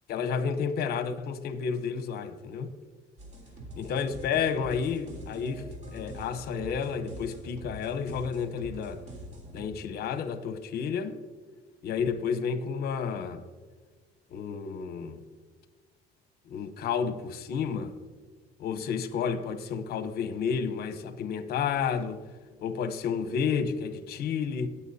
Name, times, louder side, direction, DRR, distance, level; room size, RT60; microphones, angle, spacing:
voice 1, 0.1-2.7 3.8-9.0 9.5-11.1 11.8-13.4 14.3-15.2 16.5-17.9 18.6-22.2 22.6-24.7, left 6 dB, 65° left, 0.9 m, -31 dB
sound 1, 3.2-9.7, right 1 dB, 45° right, 3.4 m, -44 dB
20.0 x 6.9 x 2.8 m
cardioid pair, 110°, 17 cm